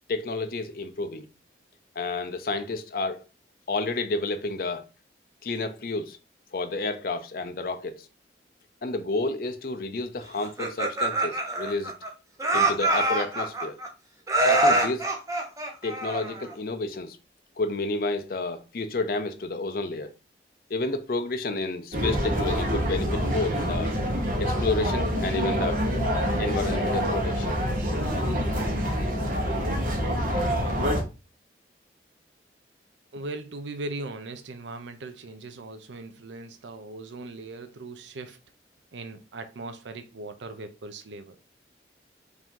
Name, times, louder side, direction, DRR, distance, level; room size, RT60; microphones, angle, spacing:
voice 1, 0.1-1.3 2.0-3.2 3.7-4.8 5.4-6.2 6.5-8.1 8.8-11.9 12.5-13.8 14.4-15.1 15.8-17.2 17.6-20.1 20.7-23.9 24.4-25.8 26.4-27.6, left 2 dB, 50° left, 0.5 m, -30 dB
Laughter, 10.4-12.1 12.4-13.9 14.3-16.5, right 2 dB, 20° right, 0.7 m, -25 dB
sound 1, 21.9-31.0, equal, 50° right, 1.0 m, -26 dB
voice 2, 33.1-38.4 38.9-41.4, right 2 dB, 85° right, 0.6 m, -39 dB
4.8 x 2.7 x 3.7 m
head